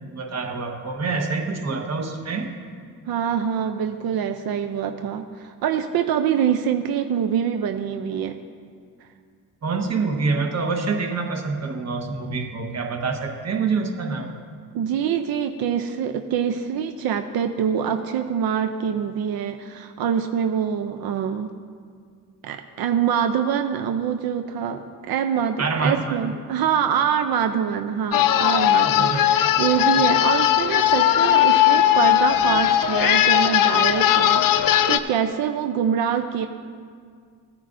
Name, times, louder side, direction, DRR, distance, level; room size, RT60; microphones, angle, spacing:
voice 1, 0.0-2.5 9.6-14.4 25.6-26.3 29.0-29.2, right 4 dB, 45° right, 4 dB, 1.2 m, -26 dB
voice 2, 3.1-8.4 14.7-21.5 22.4-36.5, right 8 dB, 80° right, 7 dB, 0.6 m, -25 dB
sound 1, 28.1-35.0, left 12 dB, 65° left, 0.6 m, -18 dB
16.0 x 9.6 x 2.6 m, 2.1 s
cardioid pair, 100°, 36 cm